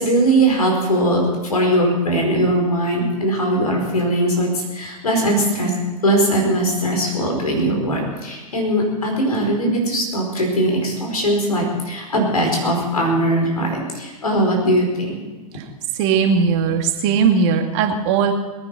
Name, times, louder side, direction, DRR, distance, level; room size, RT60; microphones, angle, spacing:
voice 1, 0.0-5.7 6.0-15.2, right 1 dB, 85° left, 1 dB, 4.8 m, -20 dB
voice 2, 16.0-18.3, right 6 dB, 50° right, 4 dB, 2.2 m, -18 dB
21.5 x 9.5 x 5.9 m, 1.2 s
figure-of-eight pair, 90°, 19 cm